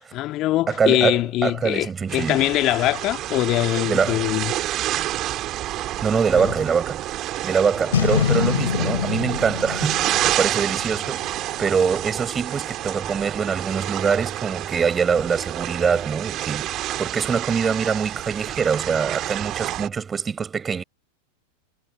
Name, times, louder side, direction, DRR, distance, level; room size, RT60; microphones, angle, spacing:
voice 1, 0.0-4.5 6.4-6.5, left 16 dB, 35° left, 2.3 m, -23 dB
voice 2, 0.7-2.4 3.9-4.3 6.0-16.7 17.0-20.8, right 6 dB, 20° right, 7.1 m, -24 dB
sound 1, 2.1-19.9, right 14 dB, 35° right, 2.6 m, -29 dB
Boom, 7.9-11.3, left 8 dB, 65° left, 4.8 m, -24 dB
figure-of-eight pair, 90°, 0 cm